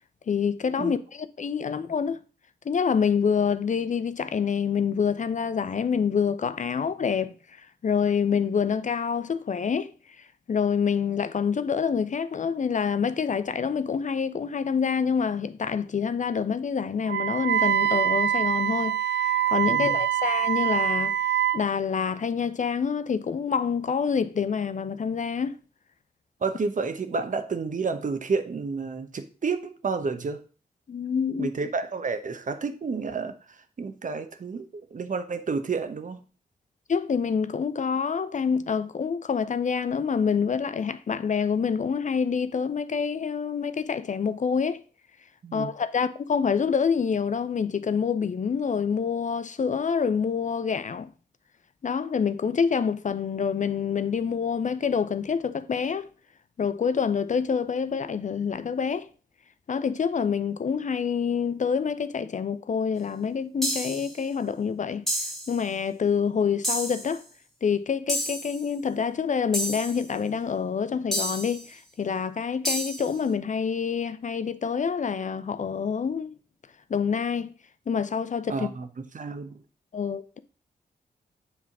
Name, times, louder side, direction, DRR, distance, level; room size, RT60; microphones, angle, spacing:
voice 1, 0.3-2.2 2.7-7.3 7.8-9.9 10.5-25.5 30.9-31.5 36.9-44.8 45.5-51.1 51.8-56.1 56.6-59.1 59.7-65.0 65.5-67.2 67.6-76.4 76.9-77.5 77.9-78.7 79.9-80.4, left 6 dB, 50° left, 0.6 m, -27 dB
Wind instrument woodwind instrument, 17.1-21.6, right 10 dB, 85° right, 0.5 m, -24 dB
voice 2, 26.4-30.4 31.4-33.4 33.8-36.2 45.4-45.7 78.5-78.9 79.1-79.5, right 4 dB, 50° right, 0.9 m, -30 dB
sound 1, 63.6-64.2 65.1-65.6 66.6-67.1 68.1-68.6 69.5-70.0 71.1-71.6 72.7-73.1, equal, ahead, 2.1 m, -30 dB
7.2 x 3.6 x 6.0 m
cardioid pair, 55°, 17 cm